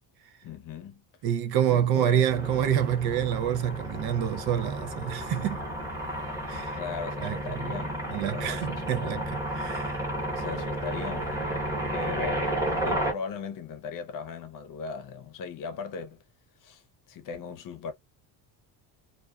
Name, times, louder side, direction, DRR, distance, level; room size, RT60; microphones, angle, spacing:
voice 1, 0.4-1.0 1.7-2.3 6.5-9.2 10.3-11.4 11.9-16.2 16.6-16.8 17.1-17.9, left 5 dB, 45° left, 0.7 m, -38 dB
voice 2, 1.2-5.6 6.5-6.8 7.2-7.4 8.1-10.1, right 10 dB, 60° right, 0.5 m, -27 dB
sound 1, 2.3-13.1, right 1 dB, 5° right, 1.0 m, -32 dB
2.4 x 2.3 x 2.2 m
cardioid pair, 145°, 44 cm